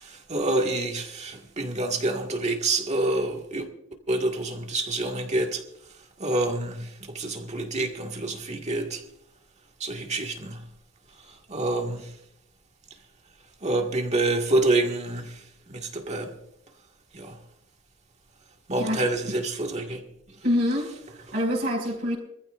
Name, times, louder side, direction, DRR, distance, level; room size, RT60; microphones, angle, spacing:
voice 1, 0.0-3.7 4.1-5.6 6.2-9.0 9.8-10.6 11.5-12.1 13.6-15.4 15.7-16.3 17.1-17.3 18.7-20.0, right 2 dB, 35° right, 1.8 m, -27 dB
voice 2, 20.4-22.1, left 1 dB, 50° right, 5.5 m, -26 dB
24.5 x 15.0 x 2.5 m
head